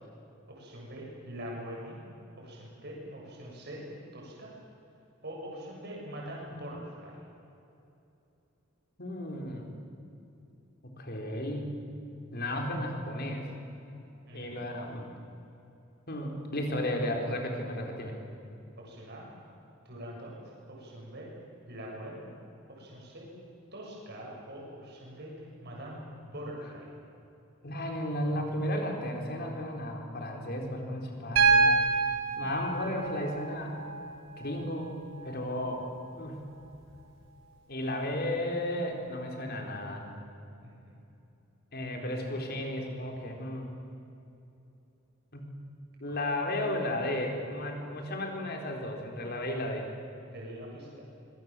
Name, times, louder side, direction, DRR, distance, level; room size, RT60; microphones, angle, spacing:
voice 1, 0.5-2.0 2.4-4.5 5.2-7.2 14.3-14.6 18.8-19.3 19.9-20.4 20.7-21.3 21.7-22.3 22.7-23.3 23.7-25.3 25.6-26.9 40.6-41.0 50.3-51.0, equal, 55° right, -3 dB, 7.3 m, -43 dB
voice 2, 9.0-9.8 10.8-11.8 12.3-13.5 14.3-15.1 16.1-18.2 27.6-31.7 32.4-33.8 34.4-34.9 35.2-35.9 36.1-36.5 37.7-40.1 41.7-43.7 45.3-45.4 46.0-49.9, left 1 dB, 50° left, 2 dB, 4.3 m, -34 dB
Piano, 31.4-35.4 36.9-37.0, right 4 dB, 70° right, 4.9 m, -27 dB
25.5 x 22.5 x 7.7 m, 2.8 s
head